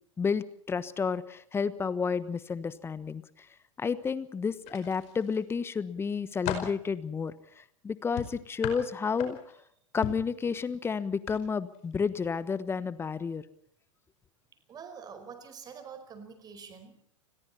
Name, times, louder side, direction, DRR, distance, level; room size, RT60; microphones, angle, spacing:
voice 1, 0.2-3.2 3.8-9.4 9.9-13.4, left 5 dB, 15° left, 17 dB, 1.1 m, -31 dB
sound 1, 4.6-5.4 5.9-6.8 8.2-9.6 10.0-10.3 11.2-11.4 11.7-11.9, left 11 dB, 40° left, 5.0 m, -37 dB
voice 2, 14.7-17.0, right 6 dB, 25° right, 9 dB, 4.9 m, -46 dB
29.0 x 21.0 x 4.3 m, 0.63 s
figure-of-eight pair, 100°, 16 cm